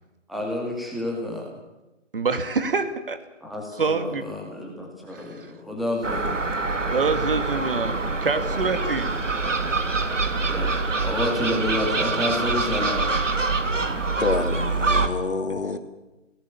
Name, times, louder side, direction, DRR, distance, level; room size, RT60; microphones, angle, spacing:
voice 1, 0.3-1.5 3.4-6.3 10.4-13.1, left 1 dB, ahead, -1 dB, 2.1 m, -29 dB
voice 2, 2.1-3.2 3.8-4.2 5.1-5.5 6.9-9.1, right 4 dB, 45° right, 9 dB, 2.6 m, -26 dB
Gull seagull, 6.0-15.1, right 3 dB, 80° right, 2.6 m, -25 dB
voice 3, 14.2-15.8, left 4 dB, 60° left, 8 dB, 2.8 m, -27 dB
29.5 x 18.5 x 7.3 m, 1.0 s
figure-of-eight pair, 160°, 37 cm